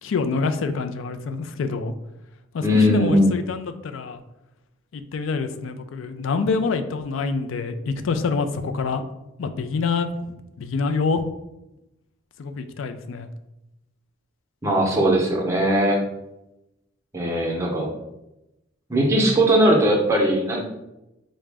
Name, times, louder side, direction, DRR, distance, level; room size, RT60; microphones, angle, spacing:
voice 1, 0.0-1.9 2.5-4.2 4.9-9.0 9.4-11.2 12.4-13.3, left 4 dB, 75° left, 9 dB, 0.4 m, -26 dB
voice 2, 2.6-3.3 14.6-16.0 17.1-17.9 18.9-20.6, equal, 15° right, -2 dB, 0.7 m, -19 dB
4.8 x 2.1 x 3.3 m, 0.93 s
head